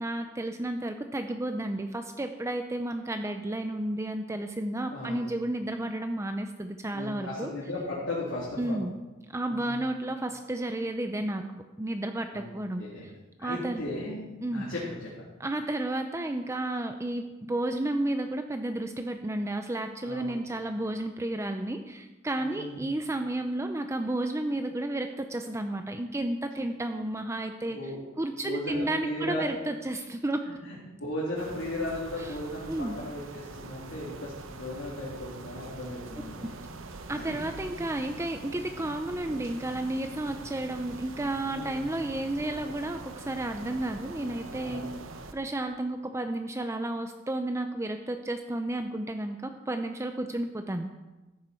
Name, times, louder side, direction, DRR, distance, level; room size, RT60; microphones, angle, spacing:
voice 1, 0.0-7.5 8.6-8.9 9.3-11.4 11.8-12.8 13.4-13.8 14.4-14.6 15.4-30.5 32.2-32.3 32.7-33.0 37.1-44.9 45.3-50.9, right 1 dB, 15° right, 6 dB, 0.5 m, -32 dB
voice 2, 4.9-5.3 6.9-8.8 9.5-9.8 12.3-12.5 12.8-13.0 13.4-14.3 14.5-15.1 20.0-20.4 22.4-22.8 27.7-28.0 28.4-29.4 30.5-36.5 37.1-37.4 41.5-41.9 44.6-45.0, left 1 dB, 70° left, -7 dB, 3.4 m, -36 dB
sound 1, 31.4-45.3, right 3 dB, 75° right, 1.0 m, -44 dB
14.5 x 10.0 x 4.5 m, 1.1 s
head